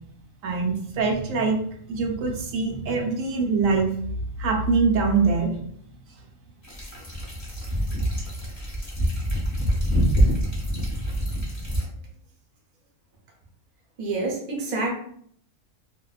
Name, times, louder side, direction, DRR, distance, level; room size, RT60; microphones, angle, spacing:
voice 1, 0.4-1.6 1.9-3.9 4.4-5.7, right 4 dB, 85° right, 1 dB, 1.0 m, -23 dB
sound 1, 6.6-11.8, equal, 20° left, 0.6 m, -25 dB
voice 2, 14.0-14.9, right 3 dB, 45° right, -1 dB, 0.6 m, -27 dB
2.5 x 2.1 x 2.3 m, 0.63 s
omnidirectional pair, 1.4 m